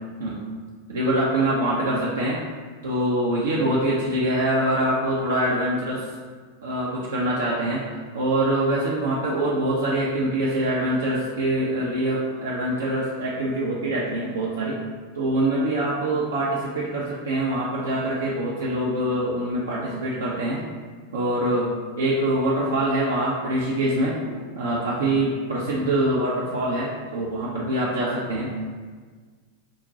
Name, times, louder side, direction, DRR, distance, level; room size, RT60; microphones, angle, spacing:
voice 1, 0.9-2.4 2.8-6.1 6.6-7.8 8.1-14.8 15.1-20.6 21.1-21.7 22.0-28.5, right 1 dB, 65° right, -6 dB, 0.6 m, -24 dB
6.2 x 2.1 x 2.7 m, 1.5 s
figure-of-eight pair, 90°, 0 cm